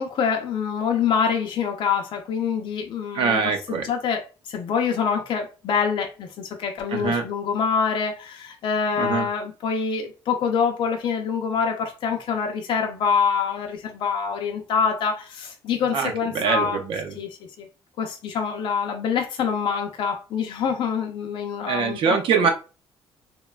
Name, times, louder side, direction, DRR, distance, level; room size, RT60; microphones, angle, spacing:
voice 1, 0.0-3.4 3.7-4.2 4.5-16.8 17.2-17.3 17.6-17.7 18.0-22.0, left 6 dB, 55° left, 0.4 m, -25 dB
voice 2, 3.1-3.9 6.9-7.2 9.0-9.2 15.9-17.2 21.7-22.5, right 5 dB, 65° right, 0.6 m, -23 dB
3.0 x 2.2 x 2.3 m
cardioid pair, 130°, 10 cm